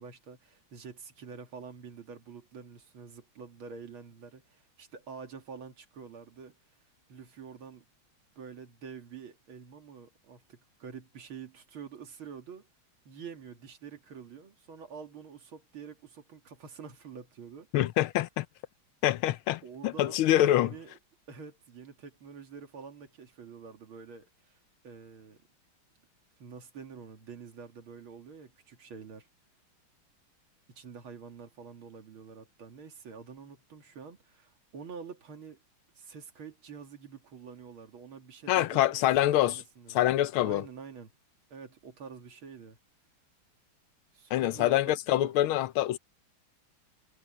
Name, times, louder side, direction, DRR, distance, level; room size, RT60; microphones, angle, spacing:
voice 1, 0.0-6.6 7.1-7.8 8.4-12.7 13.0-17.7 19.6-20.9 21.3-24.6 24.8-25.4 26.4-29.3 30.7-35.6 36.0-40.0 40.4-41.1 41.5-42.8 44.1-45.3, right 6 dB, 80° right, 3.0 m, -47 dB
voice 2, 17.7-18.4 19.0-20.7 38.5-39.6 39.9-40.6 44.3-46.0, left 14 dB, 90° left, 1.5 m, -25 dB
omnidirectional pair, 2.3 m